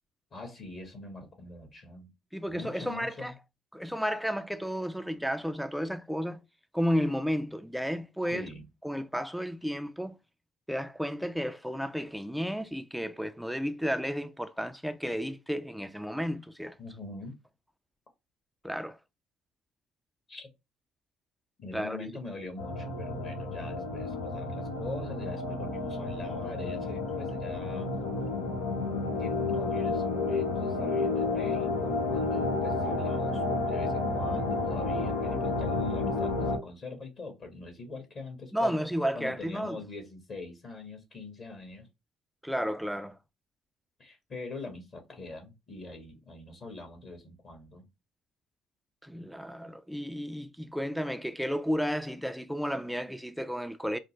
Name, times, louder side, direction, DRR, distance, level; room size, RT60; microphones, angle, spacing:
voice 1, 0.3-2.1 2.5-3.3 8.3-8.7 16.8-17.4 20.3-20.5 21.6-27.9 29.2-38.7 39.1-41.9 44.0-47.8, left 3 dB, 50° left, 1.5 m, -43 dB
voice 2, 2.3-3.3 3.7-6.4 6.7-8.5 8.8-10.2 10.7-16.8 18.6-19.0 21.7-22.1 38.5-39.8 42.4-43.2 49.0-54.0, equal, ahead, 0.4 m, -32 dB
sound 1, 22.6-36.6, left 3 dB, 85° left, 0.9 m, -31 dB
5.0 x 2.1 x 3.0 m
supercardioid pair, 65°, 0 cm